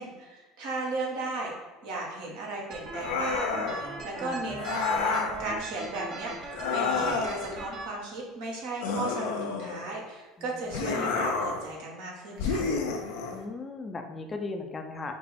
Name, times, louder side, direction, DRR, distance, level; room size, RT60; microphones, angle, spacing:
voice 1, 0.0-1.5 1.8-12.7, right 2 dB, 75° right, -2 dB, 1.4 m, -36 dB
sound 1, 2.7-7.9, right 3 dB, 50° right, 1.0 m, -40 dB
sound 2, 2.9-3.9 4.6-5.4 6.5-7.5 8.8-9.9 10.7-11.7 12.4-13.4, left 4 dB, 75° left, 0.5 m, -29 dB
voice 2, 4.2-4.5 10.4-10.7 13.3-15.1, left 3 dB, 25° left, 4 dB, 0.5 m, -37 dB
5.4 x 2.0 x 4.3 m, 1.2 s
supercardioid pair, 90°, 0 cm